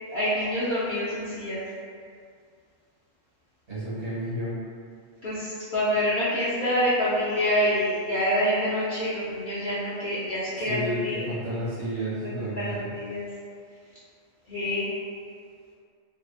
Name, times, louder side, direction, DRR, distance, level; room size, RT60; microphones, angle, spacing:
voice 1, 0.1-1.6 5.2-11.2 12.6-13.3 14.5-14.9, equal, 60° left, -11 dB, 0.5 m, -26 dB
voice 2, 3.7-4.6 10.6-12.9, equal, 60° right, -10 dB, 1.2 m, -31 dB
2.6 x 2.4 x 2.4 m, 2.2 s
omnidirectional pair, 1.4 m